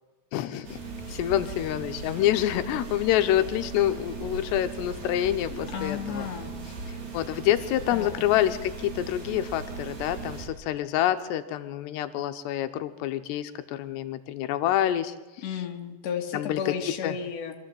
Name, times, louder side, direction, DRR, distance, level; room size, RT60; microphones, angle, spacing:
voice 1, 0.3-0.8 1.1-6.3 7.1-15.1 16.3-16.7 17.0-17.2, left 12 dB, 85° left, 9 dB, 3.0 m, -27 dB
Museum air conditioning, 0.6-10.5, right 4 dB, 65° right, 5.1 m, -38 dB
voice 2, 5.5-6.5 7.9-8.2 15.4-17.5, left 7 dB, 45° left, 2 dB, 2.6 m, -33 dB
25.0 x 14.5 x 7.7 m, 1.2 s
omnidirectional pair, 4.8 m